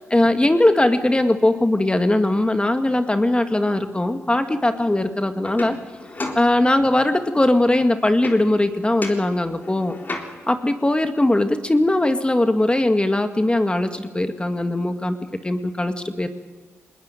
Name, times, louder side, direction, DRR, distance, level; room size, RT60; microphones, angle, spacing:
voice 1, 0.1-5.8 6.4-9.9 10.5-15.2 15.4-16.3, left 1 dB, 20° left, 8 dB, 1.9 m, -20 dB
sound 1, 5.4-7.1 8.2-8.7 9.0-10.6 13.9-14.0 14.3-15.3, left 2 dB, 35° left, 3.7 m, -35 dB
20.5 x 20.0 x 9.1 m, 1.4 s
supercardioid pair, 45°, 5 cm